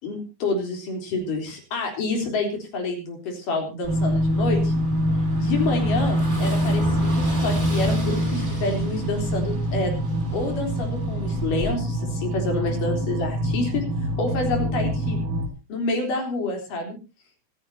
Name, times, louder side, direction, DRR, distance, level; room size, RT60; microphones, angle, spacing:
voice 1, 0.0-4.7 5.4-15.2 15.7-17.0, left 3 dB, 65° left, 3 dB, 5.3 m, -28 dB
Car passing by / Engine, 3.8-11.7, right 1 dB, 15° right, 4.6 m, -34 dB
sound 1, 3.9-15.5, equal, 65° right, 3.5 m, -25 dB
25.5 x 9.9 x 2.8 m, 0.29 s
omnidirectional pair, 4.1 m